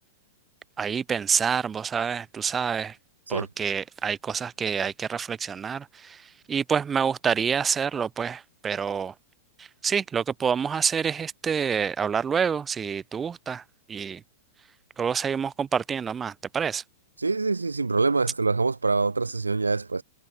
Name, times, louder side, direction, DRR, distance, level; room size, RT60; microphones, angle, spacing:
voice 1, 0.8-3.0 3.3-6.2 6.5-9.1 9.6-13.6 13.9-14.2 15.0-16.8, right 7 dB, 20° right, 3.8 m, -27 dB
voice 2, 17.2-20.0, right 3 dB, 80° right, 1.4 m, -25 dB
figure-of-eight pair, 100°, 0 cm